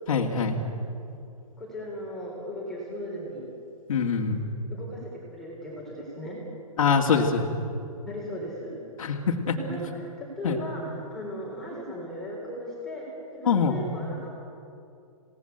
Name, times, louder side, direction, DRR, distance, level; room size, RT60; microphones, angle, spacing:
voice 1, 0.1-0.6 3.9-4.4 6.8-7.5 9.0-9.5 10.4-10.6 13.5-13.8, left 5 dB, 60° left, -1 dB, 2.4 m, -24 dB
voice 2, 1.6-3.5 4.7-6.4 8.1-8.8 9.5-14.3, equal, ahead, -5 dB, 3.8 m, -37 dB
28.0 x 18.0 x 8.1 m, 2.6 s
hypercardioid pair, 170°, 19 cm